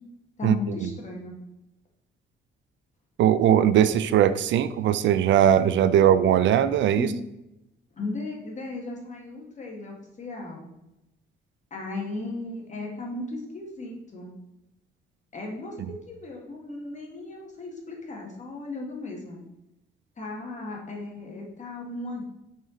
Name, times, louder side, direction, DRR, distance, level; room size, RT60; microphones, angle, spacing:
voice 1, 0.4-1.3 7.0-7.2 7.9-10.7 11.7-14.3 15.3-19.4 20.2-22.2, left 3 dB, 35° left, 0 dB, 1.9 m, -36 dB
voice 2, 3.2-7.1, right 10 dB, 70° right, 14 dB, 0.4 m, -20 dB
5.6 x 4.7 x 4.0 m, 0.91 s
cardioid pair, 90°, 20 cm